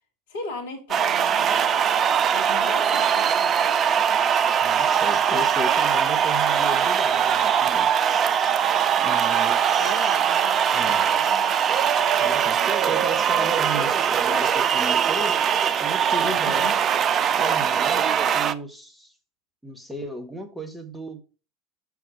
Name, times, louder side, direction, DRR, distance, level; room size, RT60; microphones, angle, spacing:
voice 1, 0.3-1.9 2.3-4.0 9.5-11.6 13.7-13.9 16.2-16.9, left 2 dB, 65° left, 1.3 m, -38 dB
sound 1, 0.9-18.5, right 8 dB, 35° right, 0.4 m, -21 dB
voice 2, 4.6-8.2 9.0-10.2 10.7-11.0 12.2-15.3 15.8-16.8 17.4-18.1 18.3-19.1 19.6-21.2, right 1 dB, ahead, 1.6 m, -35 dB
5.9 x 4.8 x 5.3 m
figure-of-eight pair, 75°, 0 cm